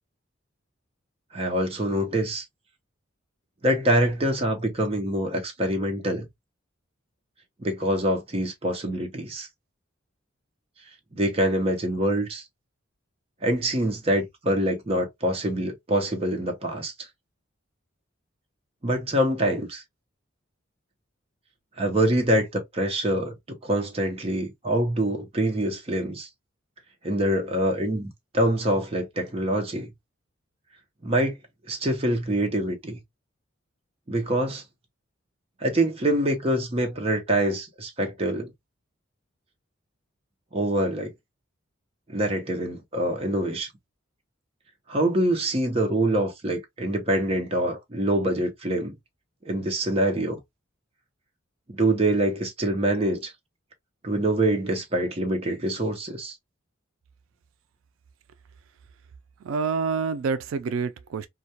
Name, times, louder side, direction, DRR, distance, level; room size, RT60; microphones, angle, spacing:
voice 1, 1.3-2.4 3.6-6.3 7.6-9.5 11.1-12.4 13.4-16.9 18.8-19.8 21.8-26.3 27.0-29.9 31.0-31.4 31.7-33.0 34.1-34.6 35.6-38.5 40.5-41.1 42.1-43.7 44.9-48.9 49.4-50.4 51.7-53.3 54.0-56.3, right 1 dB, 30° right, 0.7 m, -25 dB
voice 2, 59.4-61.3, right 5 dB, 85° right, 0.3 m, -27 dB
2.2 x 2.2 x 2.7 m
head